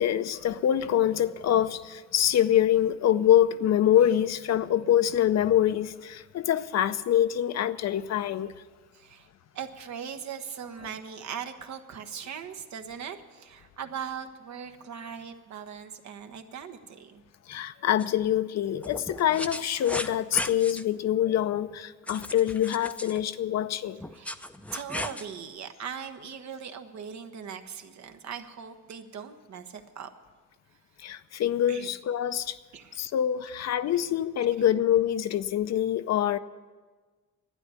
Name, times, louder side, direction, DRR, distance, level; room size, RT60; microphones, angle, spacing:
voice 1, 0.0-8.5 17.5-24.0 31.0-32.6 33.0-36.4, left 11 dB, 60° left, 0.6 m, -25 dB
voice 2, 8.9-9.3 9.5-17.2 24.1-24.4 24.7-30.1 31.7-31.9 32.7-33.1, right 7 dB, 65° right, 1.2 m, -40 dB
sound 1, 18.0-18.1 18.8-20.8 22.1-23.2 24.0-25.3, left 1 dB, 5° left, 0.6 m, -36 dB
12.0 x 9.5 x 9.5 m
cardioid pair, 90°, 30 cm